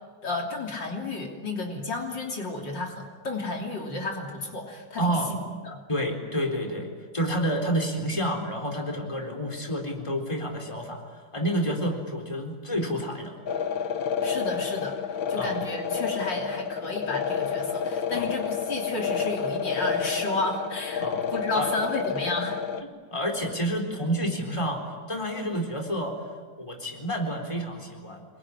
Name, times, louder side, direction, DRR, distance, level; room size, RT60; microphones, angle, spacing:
voice 1, 0.2-5.2 5.7-5.8 11.8-11.9 14.2-15.0 15.3-22.6, left 2 dB, 70° left, 1 dB, 3.8 m, -32 dB
voice 2, 5.0-5.4 5.9-11.0 11.3-13.3 15.3-15.6 18.1-18.3 21.0-21.2 21.5-21.7 22.8-26.2 26.6-28.3, equal, 15° left, 2 dB, 4.1 m, -29 dB
sound 1, 13.5-22.8, left 6 dB, 85° left, 1.9 m, -29 dB
26.5 x 22.5 x 10.0 m, 1.5 s
omnidirectional pair, 2.1 m